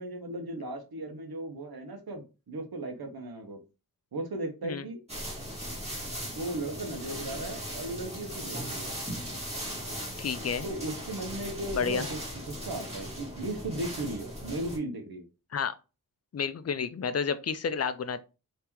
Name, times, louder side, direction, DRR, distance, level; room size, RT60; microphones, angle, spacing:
voice 1, 0.0-3.6 4.1-5.0 6.3-8.9 10.6-12.2 12.5-15.3, right 2 dB, 80° right, 0.9 m, -36 dB
sound 1, 5.1-14.8, equal, 15° right, 1.7 m, -38 dB
voice 2, 10.2-10.7 11.8-12.0 15.5-15.8 16.3-18.2, left 6 dB, 45° left, 0.4 m, -30 dB
3.5 x 2.9 x 3.0 m
wide cardioid pair, 65°, 36 cm